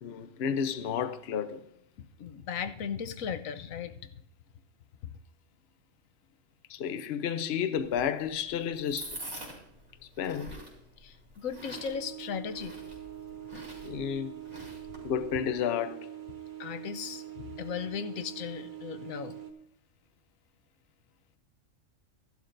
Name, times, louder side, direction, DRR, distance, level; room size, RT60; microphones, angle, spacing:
voice 1, 0.0-1.6 6.7-9.2 10.2-10.5 13.8-14.3 15.0-16.1, left 8 dB, 55° left, 0.9 m, -31 dB
voice 2, 2.0-4.0 5.0-5.1 11.0-12.8 13.5-13.7 16.6-19.3, left 7 dB, 90° left, 1.1 m, -37 dB
sound 1, 7.8-15.3, right 1 dB, 65° right, 4.0 m, -46 dB
sound 2, 11.7-19.5, right 12 dB, 40° right, 1.0 m, -44 dB
14.5 x 11.5 x 2.6 m
omnidirectional pair, 1.4 m